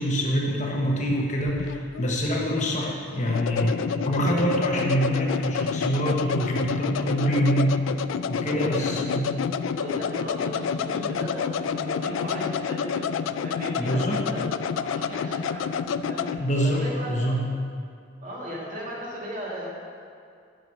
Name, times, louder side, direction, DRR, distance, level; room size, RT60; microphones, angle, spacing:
voice 1, 0.0-7.8 8.3-9.3 13.7-14.2 16.4-17.5, equal, 40° left, -2 dB, 1.1 m, -25 dB
sound 1, 1.1-16.4, left 6 dB, 85° left, 0.3 m, -29 dB
voice 2, 6.7-7.3 8.4-13.1 13.4-14.4 14.7-15.7 16.1-16.3 16.6-17.4 18.2-19.7, equal, 40° right, -5 dB, 1.9 m, -36 dB
9.2 x 6.0 x 5.5 m, 2.3 s
head